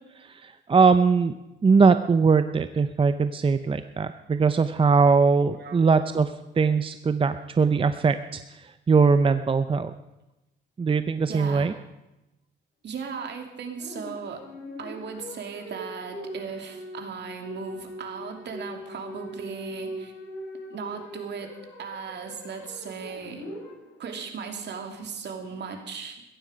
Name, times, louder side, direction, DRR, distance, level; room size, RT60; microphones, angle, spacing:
voice 1, 0.2-1.3 1.6-9.9 10.8-11.7, right 5 dB, 25° right, 10 dB, 0.6 m, -21 dB
voice 2, 11.3-11.8 12.8-14.4 14.8-20.1 20.7-23.4 24.0-26.2, right 5 dB, 60° right, 4 dB, 2.8 m, -37 dB
sound 1, 13.8-24.3, equal, 80° left, 7.5 m, -41 dB
16.0 x 14.0 x 5.1 m, 0.98 s
cardioid pair, 90°, 20 cm